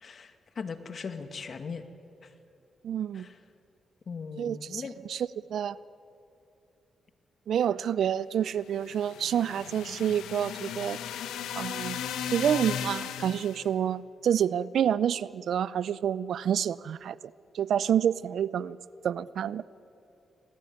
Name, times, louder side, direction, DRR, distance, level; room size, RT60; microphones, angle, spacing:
voice 1, 0.0-1.8 2.2-2.3 3.1-3.4 4.1-5.0, left 5 dB, 55° left, 8 dB, 2.1 m, -39 dB
voice 2, 2.8-3.3 4.4-4.8 5.1-5.8 7.5-11.0 11.6-12.0 12.3-17.2 17.5-18.8 19.0-19.6, right 9 dB, 75° right, 19 dB, 0.5 m, -28 dB
sound 1, 8.7-13.7, left 9 dB, 85° left, 1.2 m, -36 dB
26.5 x 20.5 x 9.6 m, 2.7 s
supercardioid pair, 55°, 0 cm